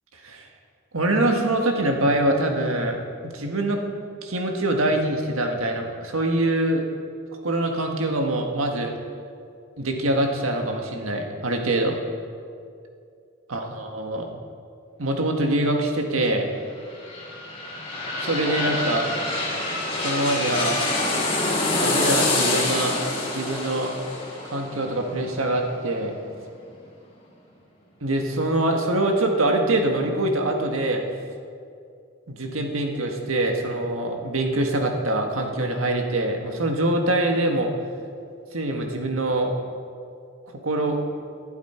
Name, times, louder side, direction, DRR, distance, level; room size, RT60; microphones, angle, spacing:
voice 1, 0.9-3.8 4.2-6.8 7.4-8.9 9.8-12.0 13.5-14.3 15.0-16.5 18.2-19.1 20.0-20.8 21.7-23.0 23.3-23.9 24.4-26.1 28.0-31.0 32.3-37.7 38.5-39.5 40.6-41.0, right 1 dB, 80° right, 3 dB, 1.7 m, -24 dB
sound 1, 16.7-26.3 26.7-26.8, left 2 dB, 25° left, 2.9 m, -26 dB
19.0 x 12.0 x 4.5 m, 2.4 s
head